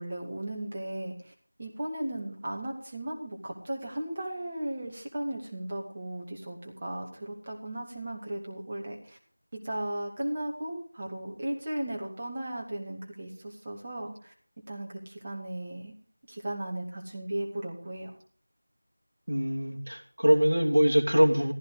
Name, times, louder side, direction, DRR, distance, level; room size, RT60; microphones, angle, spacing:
voice 1, 0.0-1.3 1.6-9.2 9.5-14.3 14.7-15.9 16.3-18.2, right 1 dB, 20° right, 0 dB, 2.4 m, -36 dB
voice 2, 19.3-21.5, equal, 55° right, 1 dB, 2.9 m, -23 dB
15.5 x 13.5 x 5.0 m, 0.42 s
figure-of-eight pair, 175°, 0 cm